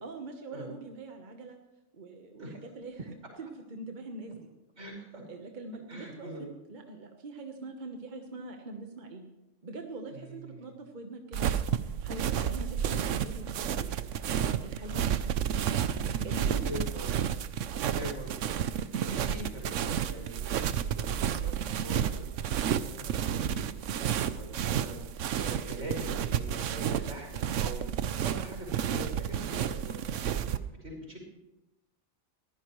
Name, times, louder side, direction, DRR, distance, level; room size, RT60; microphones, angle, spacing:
voice 1, 0.0-1.6 1.9-4.5 5.3-9.2 9.6-14.0 14.4-16.9, right 2 dB, 40° right, 3 dB, 1.3 m, -43 dB
voice 2, 4.8-5.2 5.9-6.4 10.1-10.7 12.6-12.8 16.6-17.2 17.7-27.9 28.2-30.4 30.8-31.2, right 1 dB, 75° right, 0 dB, 5.5 m, -43 dB
sound 1, 11.3-30.6, right 9 dB, 90° right, 1.0 m, -31 dB
22.0 x 15.0 x 3.1 m, 0.96 s
omnidirectional pair, 1.2 m